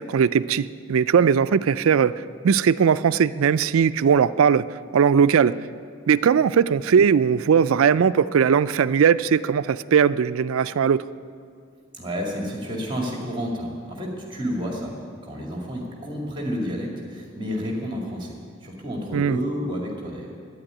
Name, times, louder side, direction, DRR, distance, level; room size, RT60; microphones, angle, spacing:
voice 1, 0.1-2.1 2.4-4.7 4.9-5.5 6.1-11.0 19.1-19.4, right 7 dB, 85° right, 15 dB, 0.4 m, -19 dB
voice 2, 11.9-18.4 18.6-20.3, equal, 25° right, -1 dB, 2.1 m, -30 dB
11.5 x 9.9 x 9.9 m, 2.2 s
head